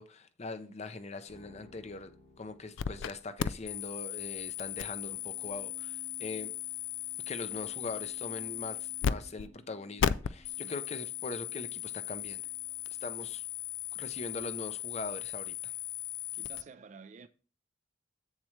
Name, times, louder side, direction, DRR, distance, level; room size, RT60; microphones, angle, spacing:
voice 1, 0.0-2.1 2.4-6.5 7.3-12.4 13.0-13.4 13.9-15.7, left 3 dB, 35° left, 0.6 m, -41 dB
sound 1, 1.3-13.6, equal, 55° left, 1.6 m, -61 dB
sound 2, 2.8-3.1 3.4-9.1 9.4-9.5 10.0-16.6, left 9 dB, 85° left, 0.4 m, -36 dB
voice 2, 10.4-10.7 16.3-17.3, right 5 dB, 40° right, 0.4 m, -52 dB
7.5 x 7.3 x 3.2 m
head